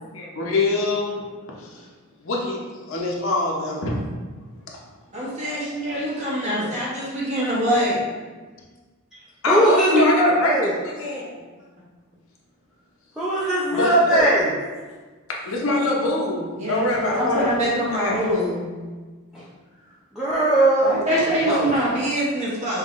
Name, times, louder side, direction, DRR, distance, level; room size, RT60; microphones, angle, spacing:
voice 1, 0.1-1.2 2.2-2.6 2.9-3.9 9.4-10.5 10.8-11.3 13.7-14.2 15.4-17.5 17.9-18.2, left 2 dB, 65° left, -2 dB, 0.7 m, -24 dB
voice 2, 5.1-8.0 16.6-18.6 20.8-22.8, equal, 30° right, -5 dB, 1.0 m, -24 dB
voice 3, 6.4-6.7 9.5-10.7 13.2-14.5 19.3-19.4 20.1-21.0 21.5-21.7, right 1 dB, ahead, -10 dB, 0.5 m, -19 dB
5.5 x 2.9 x 2.5 m, 1.3 s
head